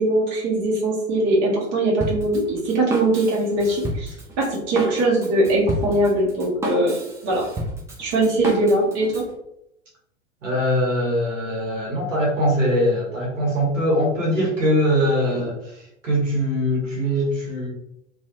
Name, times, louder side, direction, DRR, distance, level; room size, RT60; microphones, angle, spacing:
voice 1, 0.0-7.5 8.0-9.2, right 1 dB, 40° right, -4 dB, 0.9 m, -21 dB
Drum kit, 2.0-9.3, right 1 dB, 10° right, 0.4 m, -31 dB
voice 2, 10.4-17.7, equal, 85° right, -3 dB, 1.1 m, -22 dB
2.7 x 2.3 x 2.6 m, 0.79 s
figure-of-eight pair, 85°, 37 cm